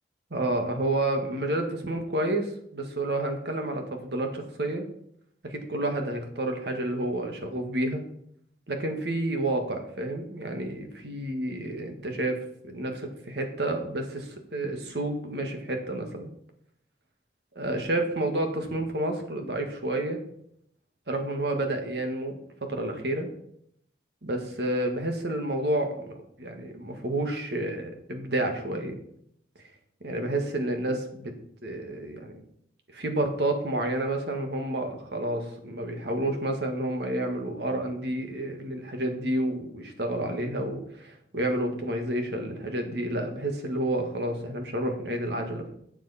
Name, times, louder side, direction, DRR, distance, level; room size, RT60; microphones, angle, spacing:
voice 1, 0.3-4.8 5.4-8.0 8.7-16.3 17.6-20.2 21.1-23.3 24.2-29.0 30.0-31.3 31.6-32.4 32.9-45.7, right 1 dB, 70° right, 4 dB, 1.8 m, -30 dB
11.5 x 8.0 x 4.2 m, 0.71 s
head